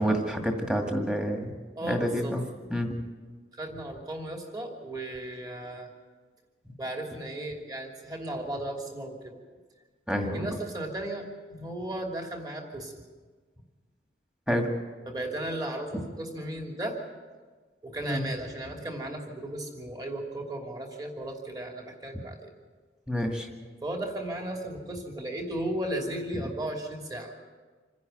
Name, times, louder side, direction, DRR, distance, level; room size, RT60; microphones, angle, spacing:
voice 1, 0.0-1.5 1.9-2.4 2.7-2.9 10.1-10.5 14.5-14.7 18.1-18.2 23.1-23.5, equal, 5° right, 2 dB, 2.1 m, -28 dB
voice 2, 1.7-2.4 3.6-5.9 6.8-9.4 10.2-12.9 15.1-17.0 17.8-22.5 23.8-27.4, right 1 dB, 20° right, 1 dB, 2.9 m, -35 dB
27.0 x 10.5 x 9.3 m, 1.4 s
head